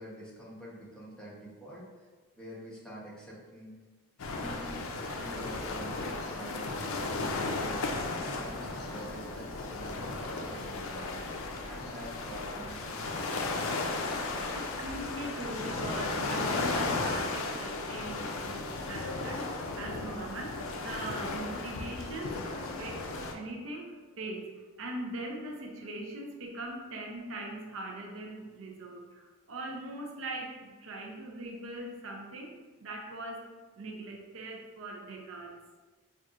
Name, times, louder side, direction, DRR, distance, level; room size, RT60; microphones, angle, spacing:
voice 1, 0.0-2.1 2.4-3.7 4.3-4.8 5.1-7.9 8.2-11.2 11.6-13.6, right 1 dB, 5° left, -7 dB, 0.8 m, -46 dB
sound 1, 4.2-23.3, left 3 dB, 80° left, 0.4 m, -35 dB
voice 2, 14.5-23.0 23.3-33.5 33.8-35.5, right 2 dB, 75° right, 1 dB, 0.6 m, -41 dB
5.4 x 2.5 x 2.4 m, 1.3 s
head